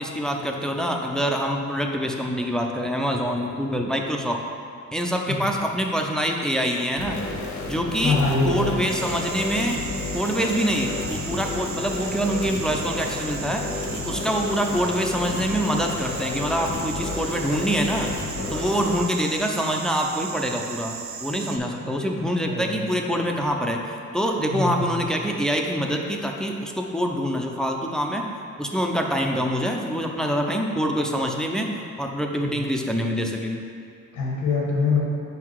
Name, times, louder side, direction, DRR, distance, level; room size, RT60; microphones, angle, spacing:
voice 1, 0.0-4.4 4.9-7.2 7.7-8.2 8.4-9.8 10.1-13.6 14.1-18.1 18.5-20.9 21.2-28.2 28.6-31.7 32.0-33.6, equal, ahead, 1 dB, 0.6 m, -25 dB
sound 1, 7.0-19.0, left 3 dB, 70° left, 1.1 m, -32 dB
voice 2, 8.0-8.8 22.0-22.1 22.4-22.7 24.5-24.9 32.4-32.6 34.1-35.0, left 3 dB, 90° left, -3 dB, 1.6 m, -24 dB
sound 2, 8.9-21.6, right 6 dB, 45° right, 0.7 m, -36 dB
5.9 x 5.1 x 4.7 m, 2.4 s
cardioid pair, 90°, 30 cm